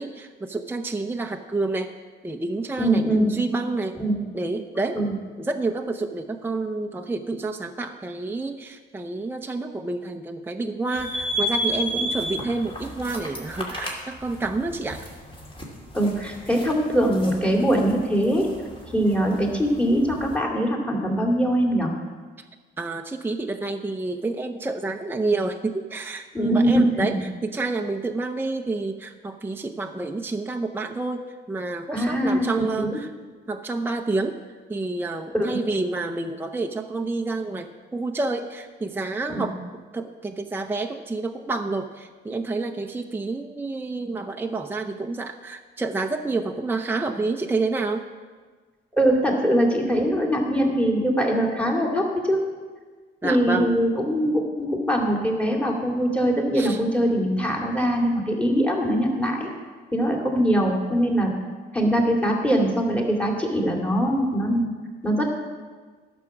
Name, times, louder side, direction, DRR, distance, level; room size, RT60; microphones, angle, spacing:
voice 1, 0.0-1.9 2.2-3.0 3.3-4.0 4.3-5.0 5.4-15.0 22.8-27.2 27.4-33.1 33.5-34.4 34.7-39.6 39.9-48.0 53.2-53.7 56.5-56.8, right 3 dB, 10° right, 4 dB, 0.6 m, -29 dB
voice 2, 2.8-3.2 4.0-4.2 4.9-5.1 15.9-18.5 18.9-21.9 26.3-27.2 31.9-32.5 32.7-33.0 35.3-35.6 39.3-39.4 48.9-52.4 53.2-59.5 59.9-61.3 61.7-64.7 65.0-65.3, equal, 5° left, 1 dB, 2.3 m, -22 dB
sound 1, 10.9-20.4, equal, 25° left, 2.5 m, -33 dB
11.5 x 6.2 x 7.2 m, 1.4 s
cardioid pair, 90°, 20 cm